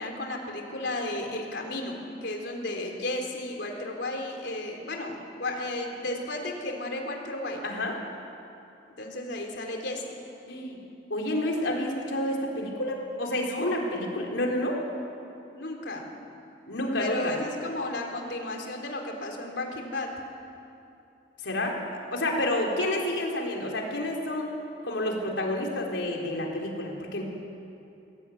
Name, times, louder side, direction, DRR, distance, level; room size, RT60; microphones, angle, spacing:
voice 1, 0.0-7.6 9.0-10.2 13.4-13.7 15.5-16.1 17.0-20.1, left 2 dB, 70° left, 2 dB, 3.7 m, -33 dB
voice 2, 7.6-7.9 10.5-10.8 11.1-14.8 16.7-17.3 21.4-21.8 22.1-24.5 24.8-27.2, left 1 dB, 85° left, 0 dB, 4.1 m, -29 dB
22.0 x 17.5 x 9.4 m, 2.7 s
head